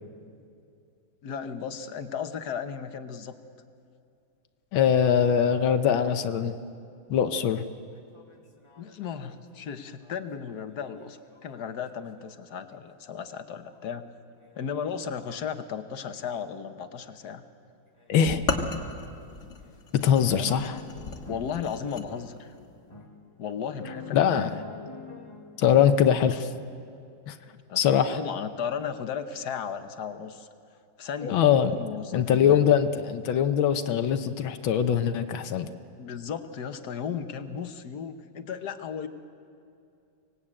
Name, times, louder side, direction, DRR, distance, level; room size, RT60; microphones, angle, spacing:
voice 1, 1.2-3.4 8.8-14.1 14.5-17.4 20.3-20.5 21.3-22.5 23.4-24.5 27.5-30.5 31.0-31.4 31.7-32.6 35.9-39.1, left 7 dB, 60° left, 9 dB, 1.5 m, -35 dB
voice 2, 4.7-6.5 7.1-7.6 18.1-18.4 19.9-20.8 24.1-24.5 25.6-26.5 27.3-27.4 27.8-28.2 31.2-31.8 32.1-35.7, left 8 dB, 85° left, 9 dB, 1.7 m, -22 dB
sound 1, 7.9-12.3 13.7-13.8 14.4-14.7 15.1-15.6 16.2-16.5 17.1-17.4 18.0-18.1 18.8-18.9 19.6-19.7 20.4-26.0, left 4 dB, 15° left, 1.5 m, -47 dB
sound 2, 18.3-22.1, left 3 dB, 40° left, 1.8 m, -34 dB
24.0 x 19.5 x 8.8 m, 2.5 s
omnidirectional pair, 2.1 m